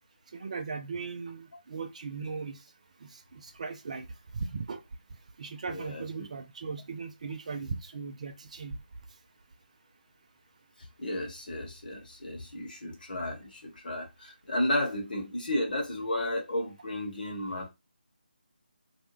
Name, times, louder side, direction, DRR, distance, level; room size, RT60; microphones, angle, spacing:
voice 1, 0.3-2.6 3.0-4.1 4.3-4.8 5.4-8.8, right 4 dB, 40° right, 0.4 m, -38 dB
voice 2, 5.7-6.2 11.0-17.7, left 1 dB, 55° left, 1.1 m, -33 dB
2.5 x 2.2 x 3.0 m
figure-of-eight pair, 155°, 6 cm